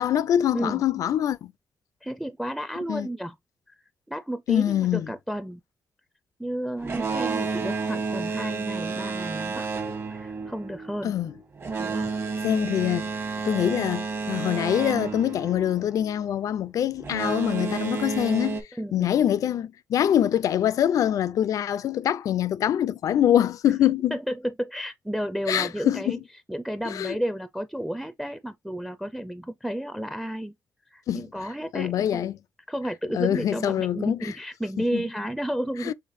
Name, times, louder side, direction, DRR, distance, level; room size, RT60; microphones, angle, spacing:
voice 1, 0.0-1.5 2.9-3.1 4.5-5.1 11.0-11.3 12.4-13.1 13.4-18.6 18.9-24.1 25.5-26.2 26.9-27.2 31.1-31.3 31.7-32.4 33.1-34.3 34.9-35.0 35.8-35.9, left 10 dB, 70° left, 0.4 m, -24 dB
voice 2, 2.0-3.4 3.7-3.8 4.1-5.6 6.4-9.7 10.1-11.1 11.8-12.1 18.8-19.1 24.1-26.2 26.5-30.5 30.9-32.3 32.7-35.9, equal, ahead, 0.4 m, -32 dB
Boat Water vehicle, 6.8-16.2 17.0-18.6, right 4 dB, 45° right, 1.3 m, -31 dB
5.7 x 3.2 x 2.6 m
cardioid pair, 115°, 6 cm